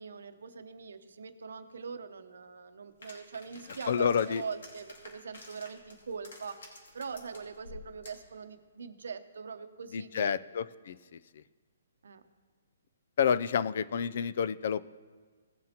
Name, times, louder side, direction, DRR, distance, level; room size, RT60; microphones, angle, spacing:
voice 1, 0.0-10.3 12.0-12.2, right 5 dB, 75° right, 10 dB, 0.8 m, -42 dB
sound 1, 3.0-8.3, left 2 dB, 70° left, 2.7 m, -51 dB
voice 2, 3.9-4.4 9.9-11.0 13.2-14.8, left 7 dB, 55° left, 16 dB, 0.4 m, -29 dB
18.0 x 7.4 x 2.9 m, 1.5 s
hypercardioid pair, 155°, 0 cm